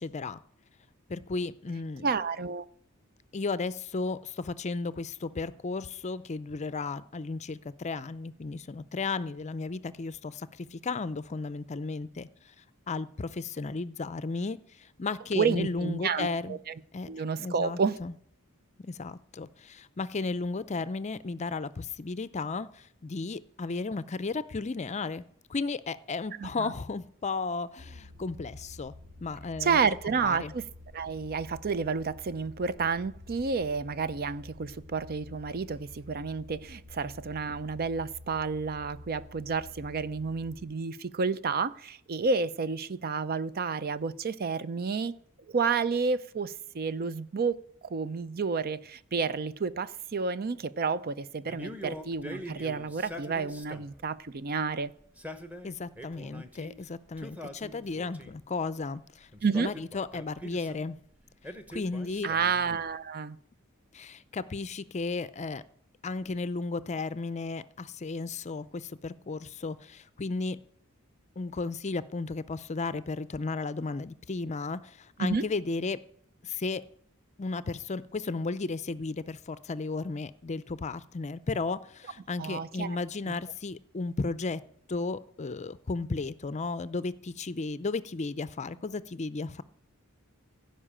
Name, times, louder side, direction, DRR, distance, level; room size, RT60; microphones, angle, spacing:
voice 1, 0.0-0.4 1.1-2.1 3.3-12.3 12.9-16.6 16.9-17.1 17.4-18.1 18.8-28.9 29.2-29.8 30.2-30.5 55.6-59.3 59.6-61.0 61.7-62.3 63.9-65.6 66.0-70.6 71.4-76.0 76.4-76.8 77.4-84.6 84.9-89.6, left 3 dB, 35° left, 0.5 m, -34 dB
voice 2, 2.0-2.6 15.3-16.7 17.1-18.0 26.4-26.7 29.6-30.7 30.9-45.2 45.5-54.9 59.4-59.7 62.2-63.4 75.2-75.4 82.4-83.0 83.3-83.4, right 5 dB, 45° right, 0.5 m, -30 dB
sound 1, 27.8-40.6, left 2 dB, 70° right, 2.6 m, -49 dB
Male speech man speaking, 51.5-54.0 55.0-56.7 57.2-58.5 59.3-60.8 61.4-62.9, equal, 10° right, 1.1 m, -44 dB
16.0 x 5.6 x 8.7 m
head